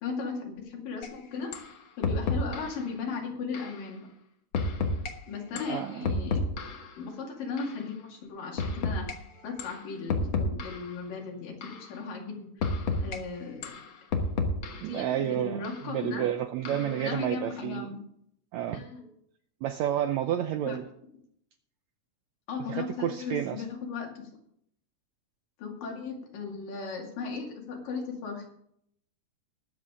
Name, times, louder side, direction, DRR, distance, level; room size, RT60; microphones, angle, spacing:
voice 1, 0.0-1.5 2.0-4.1 5.3-6.5 7.0-9.1 9.4-12.7 13.0-13.7 14.9-16.3 16.7-18.0 18.7-19.1 20.7-20.8 22.5-24.3 25.6-28.5, left 4 dB, 90° left, 0 dB, 4.1 m, -36 dB
sound 1, 1.0-1.1 1.5-1.7 2.0-2.8 3.5-3.8 4.5-5.1 5.6-6.9 7.6-7.8 8.6-9.1 9.6-9.8 10.1-10.9 11.6-11.9 12.6-13.2 13.6-14.9 15.6-15.8 16.7-17.0, left 3 dB, 55° left, 1.4 m, -30 dB
voice 2, 5.6-6.1 14.8-17.9 18.5-18.8 19.6-20.8 22.7-23.6, right 11 dB, 85° right, 9 dB, 1.6 m, -30 dB
20.5 x 7.5 x 3.7 m, 0.70 s
omnidirectional pair, 3.8 m